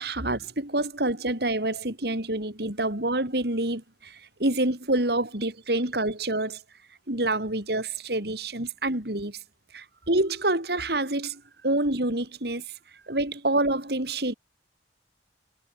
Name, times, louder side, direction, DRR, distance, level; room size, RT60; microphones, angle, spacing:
voice 1, 0.0-6.6 7.1-9.4 9.7-12.6 13.1-14.3, right 2 dB, 65° right, 4.4 m, -27 dB
head